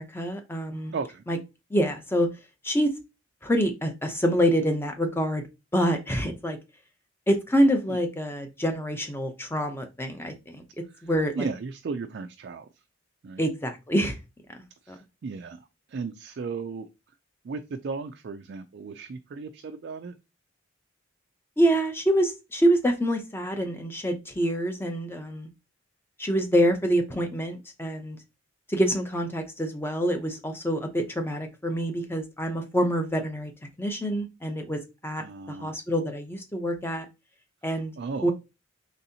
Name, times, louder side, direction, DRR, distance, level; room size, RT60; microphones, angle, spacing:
voice 1, 0.0-0.9 1.3-1.4 1.7-2.3 2.6-2.9 3.4-5.4 5.7-6.6 7.3-10.6 11.0-11.5 13.4-14.2 14.9-15.0 21.6-25.5 26.2-28.2 28.7-33.5 33.8-34.8 35.0-37.1 37.6-37.9 38.2-38.3, equal, 10° left, 0.6 m, -26 dB
voice 2, 0.9-1.2 7.9-8.0 10.9-11.1 11.4-12.7 13.2-13.4 14.8-16.9 17.4-20.1 35.2-35.8 38.0-38.3, right 4 dB, 55° right, 0.3 m, -35 dB
4.1 x 3.5 x 2.7 m
head